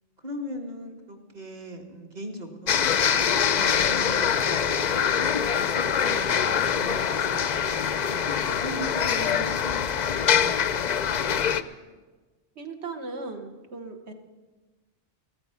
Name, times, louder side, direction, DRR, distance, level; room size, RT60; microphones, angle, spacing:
voice 1, 0.2-2.8 3.5-10.8, equal, 35° right, 3 dB, 1.7 m, -39 dB
sound 1, 2.7-11.6, left 8 dB, 55° left, 0.5 m, -24 dB
voice 2, 9.1-9.6 12.6-14.1, right 3 dB, 65° right, 5 dB, 1.6 m, -37 dB
15.0 x 14.0 x 5.8 m, 1.3 s
omnidirectional pair, 1.2 m